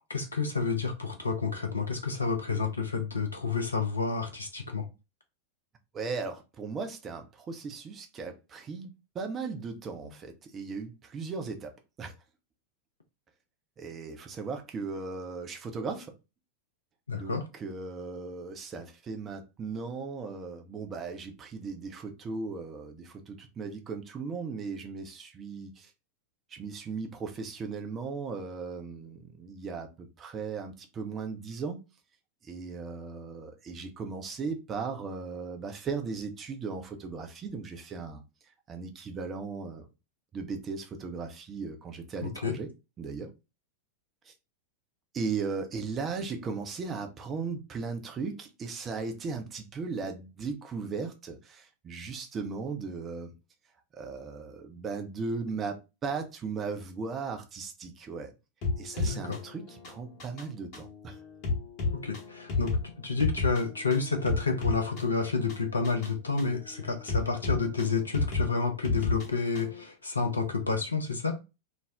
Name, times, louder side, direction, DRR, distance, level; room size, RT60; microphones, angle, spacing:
voice 1, 0.1-4.9 10.0-10.1 17.1-17.5 42.2-42.6 59.0-59.4 61.9-71.4, left 4 dB, 75° left, 0.4 m, -30 dB
voice 2, 5.9-11.7 12.0-12.1 13.8-16.1 17.1-25.9 26.5-31.8 32.4-38.2 38.7-39.9 40.3-42.7 43.0-43.3 44.3-44.4 45.1-53.3 54.0-58.3 58.8-61.2, right 4 dB, 25° right, 0.5 m, -37 dB
sound 1, 58.6-69.8, left 3 dB, 45° left, 0.9 m, -33 dB
2.5 x 2.0 x 3.2 m
figure-of-eight pair, 90°, 0 cm